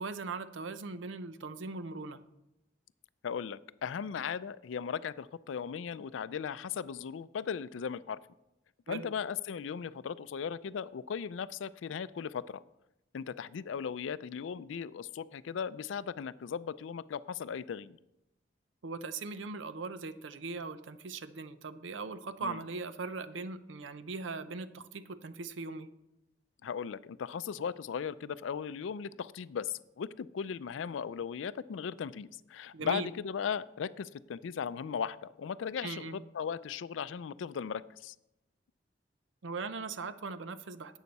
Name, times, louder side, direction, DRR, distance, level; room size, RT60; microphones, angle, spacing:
voice 1, 0.0-2.2 8.9-9.1 18.8-25.9 32.7-33.1 35.8-36.2 39.4-41.0, right 4 dB, 80° right, 12 dB, 0.6 m, -39 dB
voice 2, 3.2-8.2 8.9-12.6 13.1-18.0 22.4-22.6 26.6-38.1, left 7 dB, 85° left, 16 dB, 0.4 m, -37 dB
11.0 x 8.1 x 4.1 m, 0.88 s
head